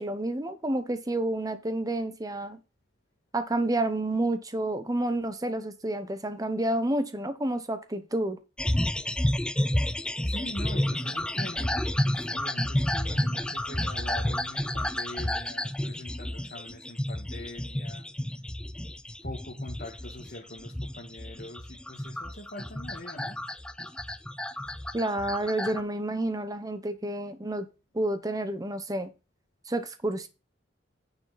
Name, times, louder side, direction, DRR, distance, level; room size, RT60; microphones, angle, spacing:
voice 1, 0.0-2.6 3.3-8.4 24.9-27.7 27.9-29.1 29.7-30.3, right 1 dB, 20° right, 0.9 m, -29 dB
sound 1, 8.6-25.8, left 1 dB, 5° left, 0.4 m, -31 dB
voice 2, 10.2-18.0 19.2-23.4, left 1 dB, 50° left, 1.8 m, -43 dB
9.3 x 6.5 x 4.1 m
head